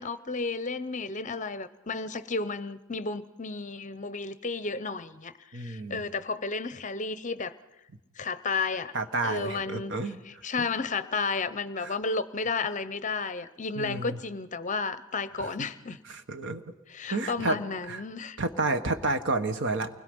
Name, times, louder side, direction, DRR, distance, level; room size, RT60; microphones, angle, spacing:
voice 1, 0.0-7.6 8.2-9.0 9.2-10.0 10.2-16.0 16.9-18.4, left 4 dB, 35° left, 0.7 m, -32 dB
voice 2, 5.5-6.0 8.9-10.2 10.6-10.7 11.8-11.9 13.8-14.2 15.4-15.5 16.1-16.6 17.1-17.6 17.9-18.0 18.4-19.9, right 3 dB, 55° right, 1.4 m, -30 dB
28.5 x 20.5 x 5.5 m
head